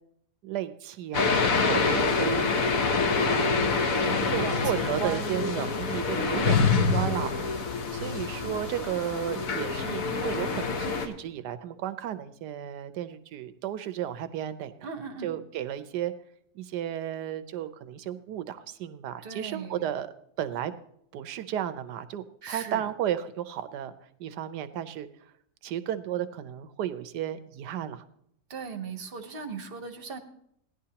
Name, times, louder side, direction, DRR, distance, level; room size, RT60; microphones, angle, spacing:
voice 1, 0.4-2.6 3.3-6.6 6.9-7.6 7.9-14.7 15.2-16.1 16.5-20.1 20.4-20.7 21.1-23.9 24.2-25.3 25.6-28.0, right 11 dB, 85° right, 13 dB, 1.3 m, -34 dB
sound 1, 1.1-11.1, left 4 dB, 60° left, 1.3 m, -26 dB
voice 2, 1.7-2.1 4.2-5.6 6.1-6.7 14.8-15.3 19.2-19.9 22.4-22.9 28.5-30.2, right 5 dB, 40° right, 6 dB, 1.0 m, -37 dB
17.0 x 11.0 x 2.9 m, 0.71 s
omnidirectional pair, 1.7 m